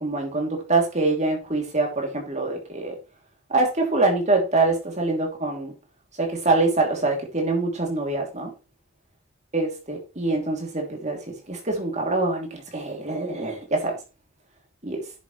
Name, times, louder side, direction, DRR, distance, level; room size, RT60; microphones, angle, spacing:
voice 1, 0.0-3.0 3.5-5.7 6.2-8.5 9.5-11.2 11.5-13.9 14.8-15.0, right 2 dB, 30° right, 3.1 m, -24 dB
10.5 x 7.2 x 3.3 m
head